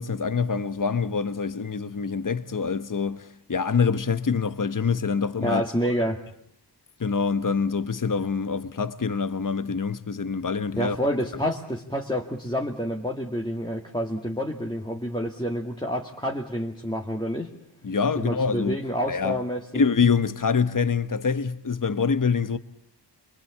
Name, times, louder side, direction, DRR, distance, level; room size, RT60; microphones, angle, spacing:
voice 1, 0.0-5.6 7.0-11.0 17.8-18.8 19.1-19.4 19.7-22.6, left 5 dB, 50° left, 1.1 m, -25 dB
voice 2, 5.4-6.2 10.8-17.5 18.2-19.6, equal, 10° left, 2.1 m, -28 dB
26.5 x 23.5 x 8.5 m
wide cardioid pair, 70°, 42 cm